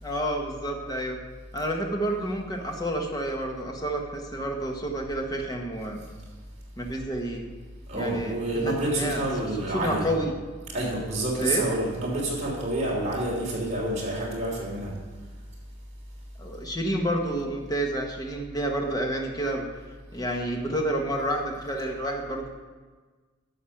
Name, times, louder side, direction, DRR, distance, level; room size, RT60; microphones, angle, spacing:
voice 1, 0.0-1.2 1.5-6.0 6.8-7.5 7.9-9.3 9.6-10.3 11.4-11.7 16.4-19.6 20.1-22.5, right 1 dB, 20° left, 2 dB, 1.3 m, -29 dB
voice 2, 7.9-10.1 10.7-14.9, right 1 dB, 35° right, -3 dB, 3.2 m, -28 dB
11.5 x 7.1 x 5.9 m, 1.4 s
head